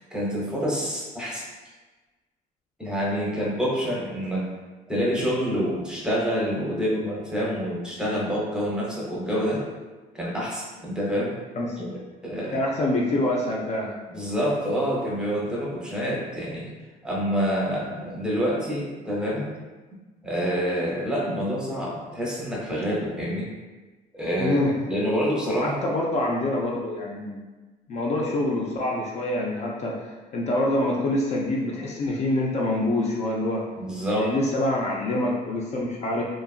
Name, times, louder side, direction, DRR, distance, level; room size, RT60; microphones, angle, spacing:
voice 1, 0.0-1.5 2.8-4.5 4.9-9.6 10.1-11.4 11.8-12.6 14.1-16.7 17.0-19.5 20.2-23.5 24.1-25.8 33.8-34.3, equal, 5° right, -5 dB, 0.7 m, -27 dB
voice 2, 12.5-14.0 24.4-24.7 25.6-27.4 27.9-33.6 34.2-36.2, left 1 dB, 40° left, -2 dB, 0.4 m, -26 dB
2.9 x 2.4 x 2.3 m, 1.2 s
cardioid pair, 110°, 17 cm